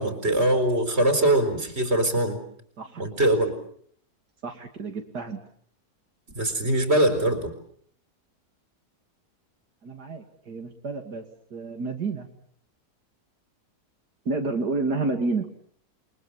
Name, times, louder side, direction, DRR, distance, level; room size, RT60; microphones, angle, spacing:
voice 1, 0.0-2.4 3.0-3.5 6.3-7.5, right 1 dB, 40° right, 8 dB, 4.7 m, -22 dB
voice 2, 4.4-5.4 9.8-11.2 11.5-12.3 14.3-15.5, right 3 dB, 85° right, 4 dB, 3.1 m, -30 dB
29.0 x 23.5 x 7.4 m, 0.63 s
omnidirectional pair, 1.7 m